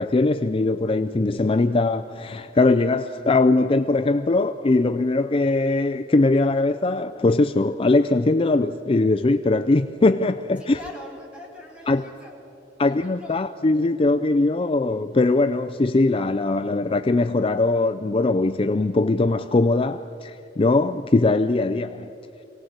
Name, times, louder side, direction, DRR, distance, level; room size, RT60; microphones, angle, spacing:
voice 1, 0.0-10.8 11.9-12.0 12.8-22.1, left 2 dB, 30° left, 0.4 m, -21 dB
voice 2, 10.7-12.3 12.8-13.4, left 1 dB, 5° right, 3.8 m, -41 dB
24.5 x 18.0 x 8.0 m
head